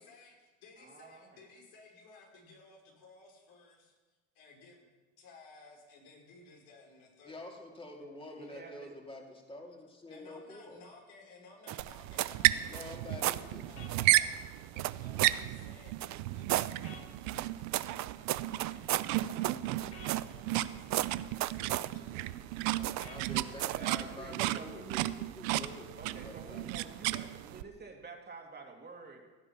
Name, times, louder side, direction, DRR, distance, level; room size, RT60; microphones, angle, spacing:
voice 1, 0.0-3.9 4.3-4.9 5.2-7.5 10.1-22.6, left 3 dB, 70° left, -1 dB, 5.0 m, -57 dB
voice 2, 0.8-1.4 8.4-8.9 23.7-25.0 26.0-29.2, right 4 dB, 25° right, 1 dB, 2.7 m, -49 dB
voice 3, 7.3-10.8 12.7-13.6 22.8-26.7, left 1 dB, 15° left, 0 dB, 2.7 m, -48 dB
sound 1, 11.7-12.4 12.7-13.4 13.9-14.1 14.8-15.4 16.0-16.7 17.3-20.6 20.9-21.9 22.8-23.2 23.6-23.9, right 15 dB, 50° right, 0.5 m, -34 dB
sound 2, 11.8-27.6, right 16 dB, 85° right, 0.7 m, -34 dB
sound 3, 13.8-13.9 16.8-17.1 19.9-20.1 23.0-23.3, left 4 dB, 40° left, 3.8 m, -49 dB
16.5 x 9.8 x 5.9 m, 1.3 s
supercardioid pair, 90°, 38 cm